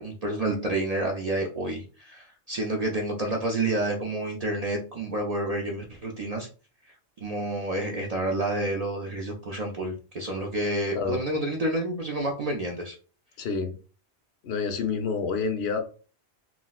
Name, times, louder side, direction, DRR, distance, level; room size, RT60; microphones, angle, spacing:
voice 1, 0.0-6.5 7.2-12.9, right 2 dB, 60° right, 0 dB, 0.4 m, -29 dB
voice 2, 13.4-13.8 14.4-15.8, left 5 dB, 70° left, 6 dB, 0.8 m, -28 dB
3.7 x 2.0 x 2.3 m, 0.37 s
omnidirectional pair, 1.1 m